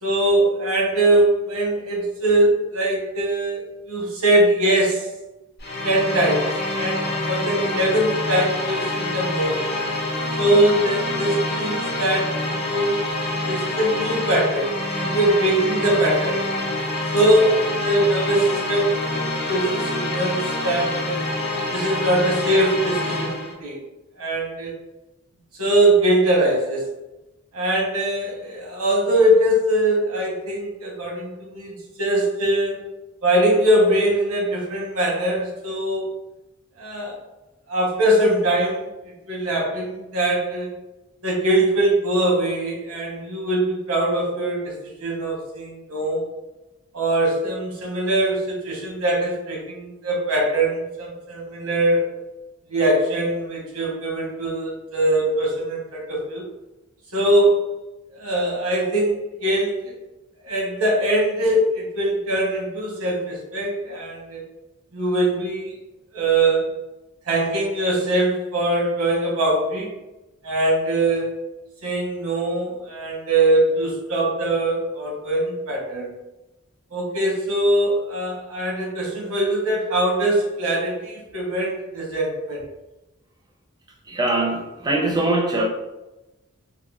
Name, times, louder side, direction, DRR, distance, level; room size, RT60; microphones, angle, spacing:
voice 1, 0.0-5.1 5.8-9.7 10.4-13.0 13.5-16.4 17.1-21.2 21.7-23.8 24.2-24.7 25.5-26.9 27.5-32.8 33.2-36.1 36.8-37.2 37.7-38.9 39.3-40.7 41.2-46.2 46.9-52.0 52.7-56.4 57.1-57.7 58.1-59.2 59.4-59.9 60.4-64.4 64.9-65.7 66.1-66.7 67.3-69.9 70.4-71.5 71.8-76.1 76.9-82.6, right 1 dB, 85° right, -2 dB, 0.9 m, -22 dB
sound 1, 5.6-23.5, left 1 dB, 50° left, 0.6 m, -26 dB
voice 2, 84.1-85.6, right 2 dB, 20° right, -1 dB, 0.4 m, -22 dB
3.6 x 2.1 x 2.3 m, 1.0 s
head